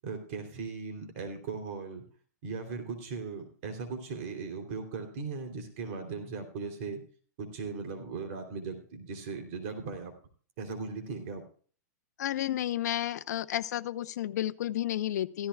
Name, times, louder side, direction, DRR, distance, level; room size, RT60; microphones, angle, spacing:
voice 1, 0.0-2.0 2.4-7.0 7.4-10.1 10.6-11.4, right 4 dB, 45° right, 4 dB, 3.2 m, -38 dB
voice 2, 12.2-15.5, left 12 dB, 65° left, 12 dB, 0.9 m, -31 dB
16.0 x 14.5 x 2.4 m, 0.43 s
hypercardioid pair, 155°, 10 cm